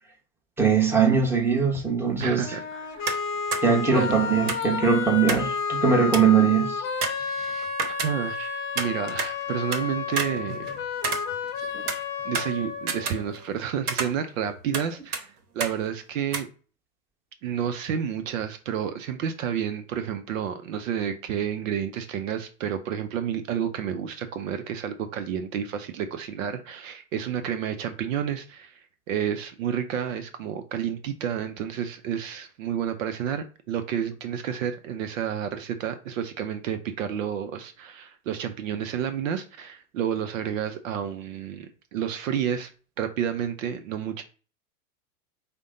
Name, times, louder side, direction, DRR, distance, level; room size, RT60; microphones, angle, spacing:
voice 1, 0.6-2.6 3.6-6.9, right 6 dB, 5° right, 1.0 m, -21 dB
voice 2, 2.2-3.1 3.8-4.3 7.1-10.7 11.9-16.5 17.4-28.8 29.1-42.7 43.0-44.2, right 8 dB, 60° right, 0.7 m, -30 dB
sound 1, 2.4-13.4, left 6 dB, 30° left, 0.8 m, -31 dB
sound 2, 3.1-3.3 3.5-3.6 4.5-5.5 5.8-5.9 6.1-6.4 7.0-8.4 8.8-9.8 10.2-11.6 11.9-13.6 13.9-14.9 15.1-15.2 15.6-15.8 16.3-16.4, right 5 dB, 80° right, 0.9 m, -30 dB
5.1 x 2.2 x 3.7 m
hypercardioid pair, 105°, 44 cm